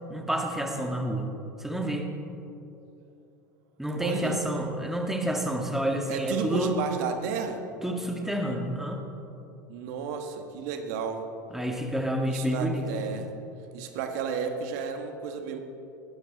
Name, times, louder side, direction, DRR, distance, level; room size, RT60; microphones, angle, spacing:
voice 1, 0.1-1.3 1.6-2.1 3.8-6.8 7.8-9.0 11.5-13.0, equal, 5° right, 2 dB, 1.8 m, -29 dB
voice 2, 4.0-4.4 6.1-7.6 9.7-11.3 12.3-13.3 13.7-15.6, right 6 dB, 60° right, 6 dB, 1.5 m, -32 dB
18.5 x 12.0 x 4.0 m, 2.9 s
hypercardioid pair, 85°, 11 cm